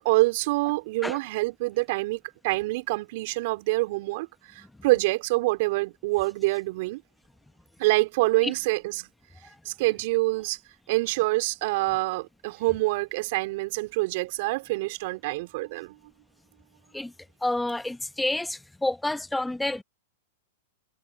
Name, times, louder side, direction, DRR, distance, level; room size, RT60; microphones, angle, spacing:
voice 1, 0.0-7.0 7.8-9.1 9.6-10.6 10.9-16.0, right 22 dB, 55° right, 4.0 m, -26 dB
voice 2, 17.4-19.8, left 2 dB, 5° left, 0.9 m, -29 dB
hypercardioid pair, 115°, 0 cm